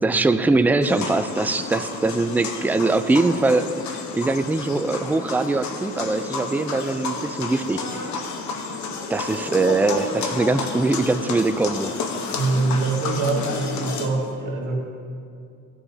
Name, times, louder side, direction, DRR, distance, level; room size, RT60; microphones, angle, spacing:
voice 1, 0.0-3.8 4.1-7.8 9.1-11.9, right 3 dB, 5° right, 10 dB, 0.4 m, -22 dB
sound 1, 0.8-14.1, left 4 dB, 70° left, 1.1 m, -31 dB
voice 2, 12.3-14.8, right 3 dB, 90° right, -2 dB, 2.2 m, -24 dB
16.0 x 9.9 x 2.8 m, 2.4 s
cardioid pair, 90°, 30 cm